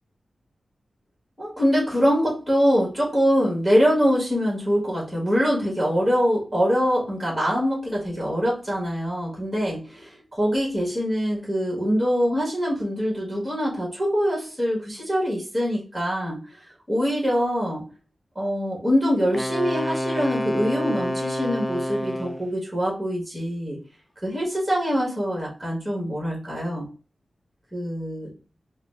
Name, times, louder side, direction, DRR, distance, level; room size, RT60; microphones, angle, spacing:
voice 1, 1.4-16.4 16.9-17.8 18.3-23.8 24.2-26.9 27.7-28.3, equal, 5° right, -3 dB, 1.6 m, -24 dB
Wind instrument woodwind instrument, 19.3-22.5, equal, 10° left, 0.3 m, -28 dB
4.7 x 2.1 x 3.4 m, 0.38 s
wide cardioid pair, 120°, 0 cm